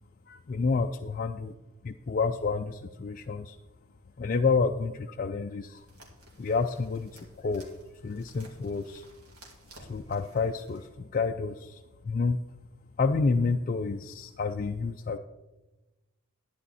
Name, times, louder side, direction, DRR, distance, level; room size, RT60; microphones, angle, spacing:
voice 1, 0.3-1.5 1.8-3.6 4.2-5.8 6.4-7.7 8.0-9.1 9.8-12.4 13.0-15.2, left 4 dB, 40° left, 5 dB, 0.3 m, -29 dB
sound 1, 5.8-10.9, right 1 dB, 85° right, 2.6 m, -54 dB
11.5 x 10.0 x 4.1 m, 1.1 s
head